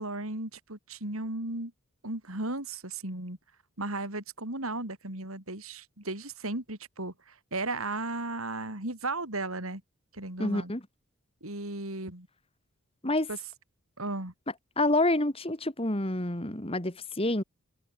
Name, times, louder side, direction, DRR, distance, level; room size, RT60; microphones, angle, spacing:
voice 1, 0.0-1.7 2.0-3.4 3.8-9.8 10.1-10.7 11.4-12.3 13.3-13.4 14.0-14.3, right 2 dB, 75° right, 5.3 m, -35 dB
voice 2, 10.4-10.8 13.0-13.3 14.8-17.4, left 2 dB, 25° left, 2.5 m, -28 dB
head